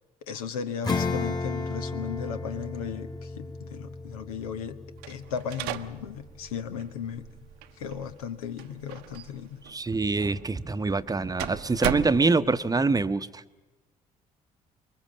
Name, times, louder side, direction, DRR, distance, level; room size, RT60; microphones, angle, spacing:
voice 1, 0.3-4.8 5.1-7.3 7.8-9.6, left 7 dB, 75° left, 9 dB, 1.1 m, -36 dB
Acoustic guitar / Strum, 0.8-6.8, left 3 dB, 20° left, 2.1 m, -34 dB
sound 1, 5.0-12.8, right 13 dB, 70° right, 0.9 m, -39 dB
voice 2, 9.7-13.4, right 3 dB, 20° right, 12 dB, 0.9 m, -25 dB
25.5 x 22.5 x 7.5 m, 1.1 s
figure-of-eight pair, 45°, 19 cm